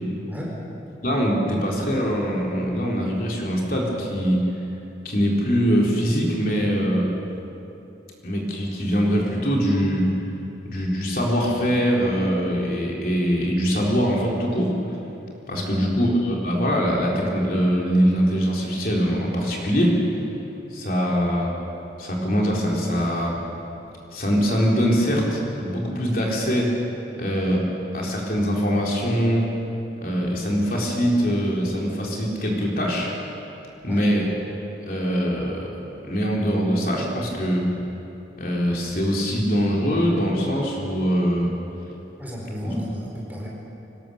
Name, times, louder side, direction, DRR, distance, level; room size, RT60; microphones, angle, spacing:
voice 1, 0.2-0.5 15.5-15.9 33.8-34.1 42.2-43.5, equal, 10° right, -3 dB, 4.5 m, -33 dB
voice 2, 1.0-4.4 5.0-7.1 8.2-10.1 10.6-14.7 15.5-20.0 20.7-21.5 22.0-23.4 24.1-26.7 27.1-27.6 27.9-29.5 30.0-33.1 33.8-34.3 34.8-35.7 36.0-37.7 38.4-41.5 42.6-42.7, equal, 55° left, -2 dB, 3.8 m, -22 dB
24.5 x 19.0 x 7.0 m, 2.9 s
head